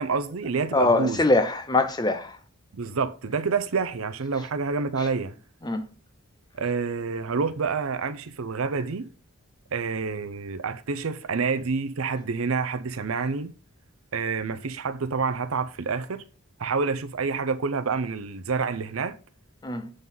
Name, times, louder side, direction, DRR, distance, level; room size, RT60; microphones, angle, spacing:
voice 1, 0.0-1.2 2.7-5.3 6.5-9.1 9.7-13.5 14.1-16.2 16.6-19.2, right 4 dB, 75° right, 0.6 m, -28 dB
voice 2, 0.7-2.4 5.0-5.1 5.6-5.8 19.6-19.9, left 2 dB, 20° left, 0.6 m, -23 dB
7.6 x 3.9 x 5.3 m
head